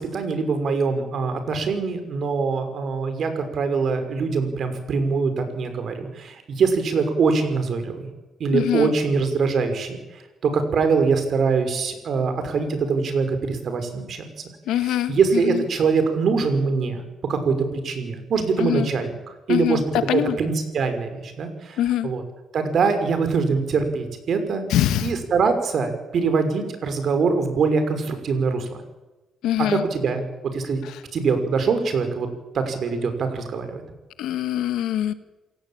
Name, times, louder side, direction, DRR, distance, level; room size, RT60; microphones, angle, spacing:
voice 1, 0.0-8.1 8.4-10.0 10.4-14.2 14.8-17.0 17.3-22.2 22.5-24.7 25.0-28.8 29.6-30.2 30.5-30.8 31.1-32.3 32.5-33.8, right 5 dB, 60° right, 7 dB, 5.7 m, -23 dB
voice 2, 8.5-8.9 14.7-15.6 18.6-18.9 19.5-19.8 20.1-20.4 21.8-22.1 24.7-25.1 29.4-29.8 34.2-35.1, left 12 dB, 85° left, 11 dB, 1.9 m, -23 dB
28.0 x 17.0 x 8.9 m, 1.1 s
cardioid pair, 90°, 0 cm